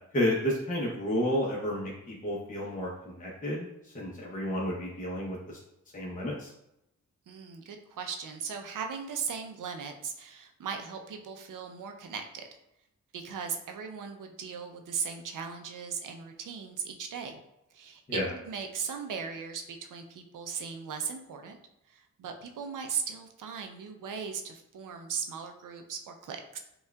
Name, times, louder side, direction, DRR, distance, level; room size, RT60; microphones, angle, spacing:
voice 1, 0.1-5.6 5.9-6.5 18.1-18.3, equal, 25° left, -5 dB, 0.8 m, -31 dB
voice 2, 7.3-12.5 13.1-17.4 17.7-18.2 18.4-21.6 21.9-26.6, right 6 dB, 90° right, 5 dB, 0.5 m, -38 dB
5.5 x 2.3 x 2.3 m, 0.84 s
cardioid pair, 80°, 31 cm